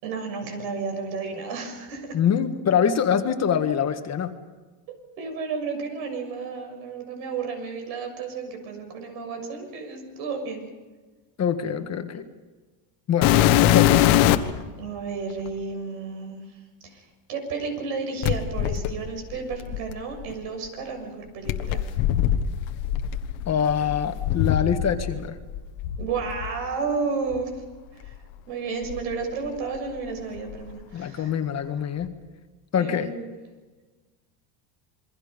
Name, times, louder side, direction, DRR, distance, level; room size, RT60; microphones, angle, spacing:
voice 1, 0.0-2.2 4.9-10.7 14.8-16.4 16.8-21.9 26.0-27.6 27.9-28.1 28.5-31.3 32.7-33.3, right 4 dB, 80° right, 4 dB, 6.9 m, -32 dB
voice 2, 2.1-4.3 11.4-12.2 13.1-13.3 13.6-14.0 23.5-25.4 30.9-32.1 32.7-33.1, left 8 dB, 30° left, 7 dB, 1.6 m, -24 dB
sound 1, 13.2-14.6 15.5-15.6 18.2-20.3 21.5-25.2 25.5-26.5 27.3-27.4 28.0-28.1 28.8-29.9 30.2-30.7 32.0-32.1, left 12 dB, 70° left, 1.6 m, -23 dB
28.0 x 22.5 x 5.2 m, 1.3 s
cardioid pair, 140°, 49 cm